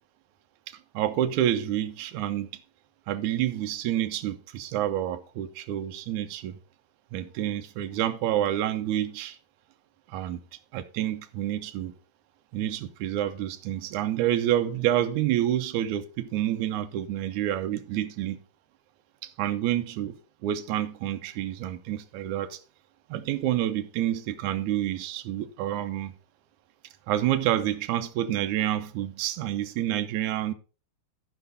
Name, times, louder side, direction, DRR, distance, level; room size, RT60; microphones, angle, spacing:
voice 1, 0.7-2.5 3.1-6.6 7.1-9.4 10.1-10.4 10.7-11.9 12.5-18.4 19.2-20.2 20.4-22.6 23.1-26.2 27.1-30.5, right 12 dB, 75° right, 2.1 m, -28 dB
14.0 x 5.2 x 4.0 m
omnidirectional pair, 3.8 m